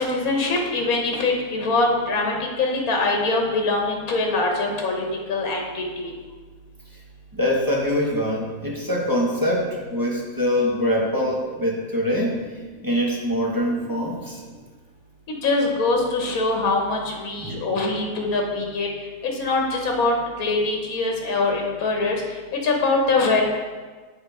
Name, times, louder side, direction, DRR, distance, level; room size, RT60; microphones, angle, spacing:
voice 1, 0.0-6.1 15.3-18.9 19.4-22.2 22.5-23.5, left 3 dB, 75° left, 1 dB, 1.5 m, -23 dB
voice 2, 7.3-12.4 12.8-14.4 17.4-17.6, equal, 15° right, -3 dB, 1.0 m, -24 dB
8.9 x 3.5 x 4.7 m, 1.4 s
omnidirectional pair, 1.5 m